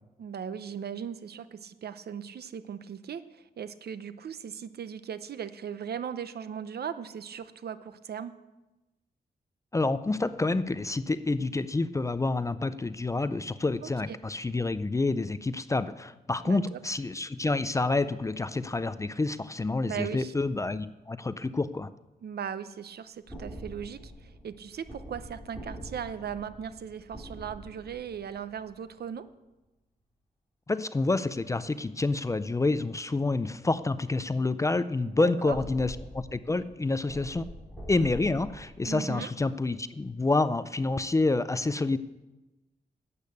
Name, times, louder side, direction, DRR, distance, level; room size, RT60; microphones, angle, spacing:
voice 1, 0.2-8.3 14.1-14.2 16.4-16.8 19.8-20.3 22.2-29.3 35.0-35.6 38.8-39.3, right 8 dB, 70° right, 13 dB, 0.7 m, -38 dB
voice 2, 9.7-21.9 30.7-37.5 37.9-42.0, left 3 dB, 20° left, 13 dB, 0.4 m, -28 dB
sound 1, 23.3-28.9 35.5-38.9, equal, 5° right, 4.0 m, -44 dB
12.0 x 8.4 x 8.3 m, 1.1 s
wide cardioid pair, 170°, 17 cm